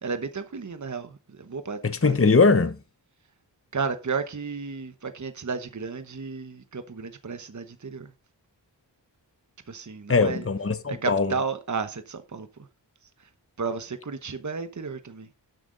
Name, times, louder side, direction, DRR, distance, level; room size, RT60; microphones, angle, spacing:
voice 1, 0.0-2.2 3.7-8.1 9.7-10.4 10.9-12.5 13.6-15.3, right 5 dB, 40° right, 1.1 m, -33 dB
voice 2, 1.8-2.8 10.1-11.3, left 4 dB, 30° left, 1.0 m, -21 dB
12.0 x 7.9 x 3.9 m
wide cardioid pair, 70°, 44 cm